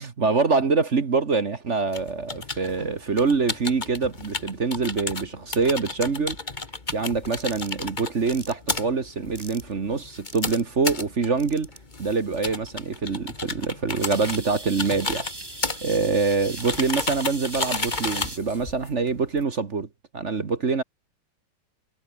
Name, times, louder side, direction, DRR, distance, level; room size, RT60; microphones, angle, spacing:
voice 1, 0.0-6.4 6.9-11.7 12.0-15.3 15.8-19.9 20.1-20.8, right 4 dB, 40° right, 1.7 m, -25 dB
sound 1, 1.9-19.4, left 3 dB, 25° left, 1.8 m, -33 dB
sound 2, 7.2-7.7 8.3-8.5 9.3-9.7 10.3-10.7 11.4-11.8 12.3-12.4 14.0-18.4, right 2 dB, 15° right, 1.7 m, -39 dB
omnidirectional pair, 2.1 m